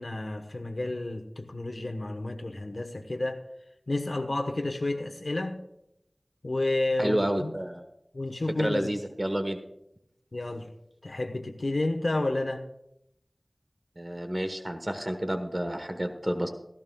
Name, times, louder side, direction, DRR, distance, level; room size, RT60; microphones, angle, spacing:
voice 1, 0.0-3.4 3.9-5.6 6.4-7.5 8.1-8.9 10.3-10.7 11.0-12.6, left 2 dB, 75° left, 4 dB, 1.0 m, -30 dB
voice 2, 7.0-7.8 8.6-9.6 14.0-16.5, right 1 dB, 30° right, 6 dB, 1.1 m, -30 dB
16.0 x 14.5 x 2.3 m, 0.79 s
wide cardioid pair, 40°, 0 cm